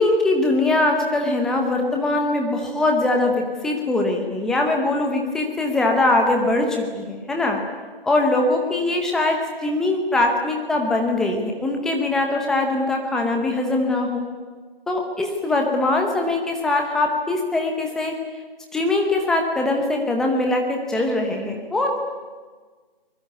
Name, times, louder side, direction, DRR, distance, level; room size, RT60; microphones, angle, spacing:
voice 1, 0.0-7.6 8.0-14.2 14.9-18.1 18.7-22.0, left 2 dB, ahead, 2 dB, 0.7 m, -22 dB
24.0 x 21.0 x 9.4 m, 1.4 s
figure-of-eight pair, 155°, 30 cm